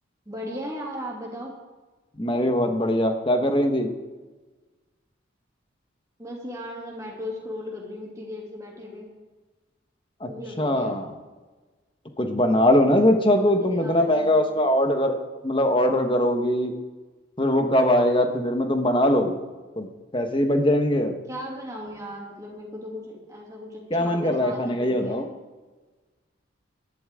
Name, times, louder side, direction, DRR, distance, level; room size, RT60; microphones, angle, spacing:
voice 1, 0.3-1.5 6.2-9.1 10.2-11.0 13.4-14.5 21.3-25.3, left 1 dB, 15° right, -2 dB, 2.7 m, -37 dB
voice 2, 2.2-3.9 10.2-10.3 10.6-11.1 12.2-15.1 15.4-16.7 17.4-19.4 19.8-21.1 23.9-25.3, left 1 dB, 25° left, 5 dB, 1.2 m, -21 dB
18.5 x 12.0 x 3.7 m, 1.3 s
head